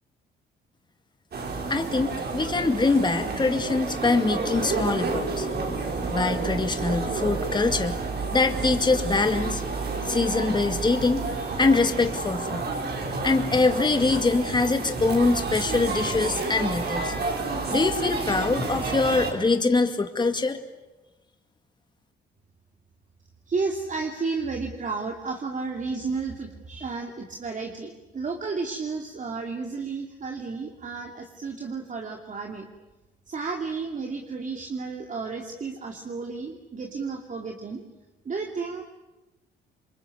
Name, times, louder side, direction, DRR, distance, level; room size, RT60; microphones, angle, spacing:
sound 1, 1.3-19.3, right 3 dB, 55° right, 5.9 m, -30 dB
voice 1, 1.7-5.5 6.1-8.0 8.3-9.6 10.1-12.7 13.2-17.1 17.7-20.6, left 3 dB, 20° left, 6 dB, 2.1 m, -24 dB
voice 2, 23.5-32.7 33.3-37.8 38.2-38.8, right 4 dB, 40° right, 3 dB, 2.8 m, -32 dB
27.0 x 22.5 x 9.6 m, 1.1 s
cardioid pair, 90°, 20 cm